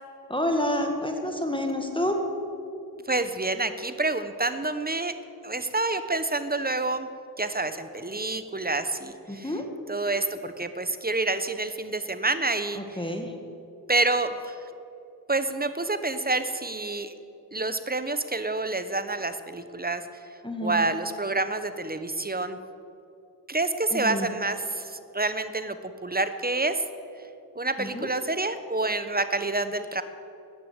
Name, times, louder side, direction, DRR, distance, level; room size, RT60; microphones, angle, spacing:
voice 1, 0.3-2.3 9.3-9.6 12.8-13.3 20.4-20.9 23.9-24.3 27.8-28.1, left 1 dB, 10° left, 3 dB, 1.8 m, -28 dB
voice 2, 3.1-5.1 5.4-7.1 7.4-9.5 9.9-13.1 13.9-14.6 15.3-17.1 17.5-20.0 20.6-22.6 23.5-25.8 26.0-26.8 27.6-30.0, right 2 dB, 25° right, 11 dB, 1.1 m, -28 dB
14.5 x 10.0 x 8.1 m, 2.7 s
cardioid pair, 50°, 39 cm